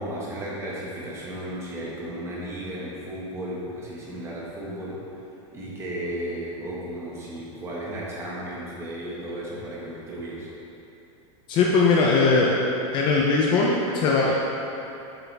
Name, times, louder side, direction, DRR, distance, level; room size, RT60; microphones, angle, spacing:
voice 1, 0.0-5.0 5.5-10.5, right 1 dB, 15° right, -6 dB, 1.4 m, -34 dB
voice 2, 11.5-12.5 12.9-14.3, left 4 dB, 30° left, -2 dB, 0.6 m, -20 dB
7.8 x 6.9 x 3.4 m, 2.9 s
supercardioid pair, 160°, 17 cm